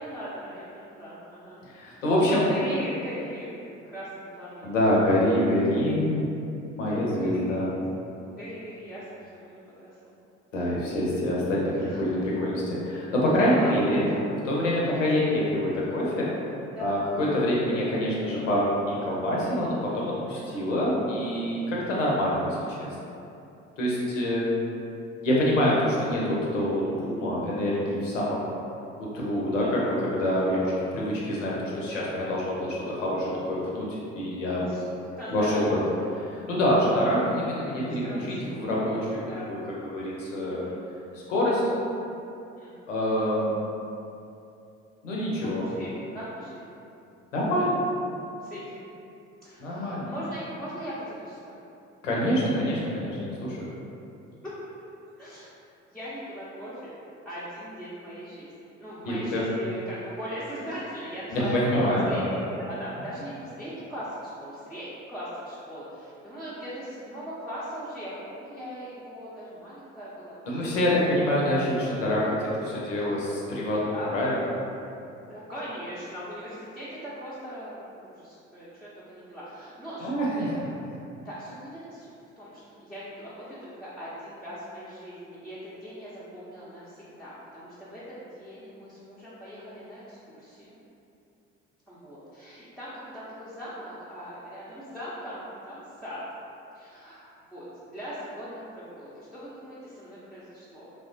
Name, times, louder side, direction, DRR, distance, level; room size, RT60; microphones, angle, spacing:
voice 1, 0.0-1.6 2.3-4.7 7.2-7.7 8.0-10.1 11.7-12.1 13.5-14.3 14.9-15.0 15.4-15.6 16.7-16.9 20.3-20.6 29.6-29.7 34.6-35.6 36.0-36.3 38.0-38.3 39.3-39.5 40.4-40.7 42.6-42.8 45.6-46.7 48.4-48.9 49.4-51.5 54.4-54.5 55.2-55.5 55.9-56.9 57.3-58.5 58.8-61.7 62.1-70.6 70.8-71.1 73.9-74.2 75.2-80.6 81.2-90.8 91.9-96.2 96.7-97.3 97.5-100.9, equal, ahead, -11 dB, 0.5 m, -40 dB
voice 2, 1.7-2.5 4.6-6.3 6.8-7.7 10.5-14.1 14.4-16.3 16.8-22.9 23.8-24.5 25.2-28.5 29.0-34.7 35.3-35.8 36.1-39.2 39.5-40.6 41.1-41.6 42.9-43.5 45.0-45.7 47.3-47.8 49.6-50.1 52.0-53.7 59.0-59.4 61.3-62.2 70.5-74.4 80.0-80.3, left 1 dB, 85° left, -5 dB, 0.6 m, -26 dB
3.1 x 2.1 x 2.6 m, 2.7 s
figure-of-eight pair, 55°, 37 cm